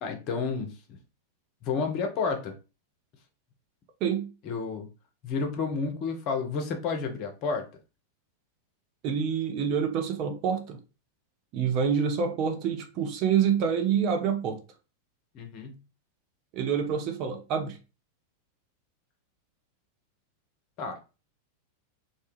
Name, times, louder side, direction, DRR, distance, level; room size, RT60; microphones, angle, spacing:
voice 1, 0.0-0.7 1.6-2.5 4.5-4.9 5.2-7.7 15.3-15.7 20.8-21.0, left 4 dB, 40° left, 0.6 m, -30 dB
voice 2, 9.0-10.8 11.5-14.6 16.5-17.8, right 7 dB, 40° right, 0.5 m, -27 dB
2.2 x 2.1 x 3.0 m
figure-of-eight pair, 90°, 0 cm